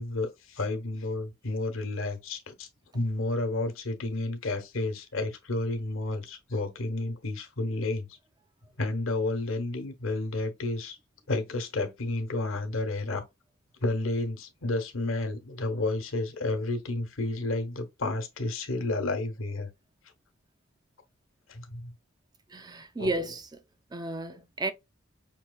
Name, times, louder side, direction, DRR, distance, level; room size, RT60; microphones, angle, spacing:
voice 1, 0.0-2.7 2.9-8.1 8.8-11.0 11.3-13.2 13.8-19.7 21.5-21.9 23.0-23.1, left 2 dB, 80° left, 0.9 m, -31 dB
voice 2, 22.5-23.5 23.9-24.7, right 2 dB, 20° right, 0.4 m, -32 dB
5.5 x 2.8 x 2.3 m
head